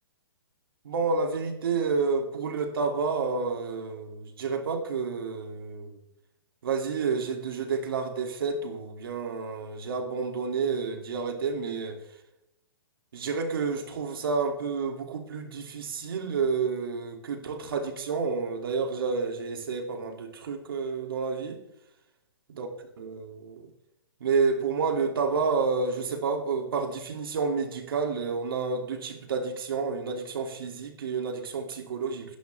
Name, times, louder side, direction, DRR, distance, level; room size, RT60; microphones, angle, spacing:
voice 1, 0.8-6.0 6.6-12.0 13.1-21.6 22.6-22.7 23.0-23.7 24.2-32.4, right 5 dB, 65° right, 2.9 m, -30 dB
16.0 x 11.5 x 3.6 m
hypercardioid pair, 150°, 13 cm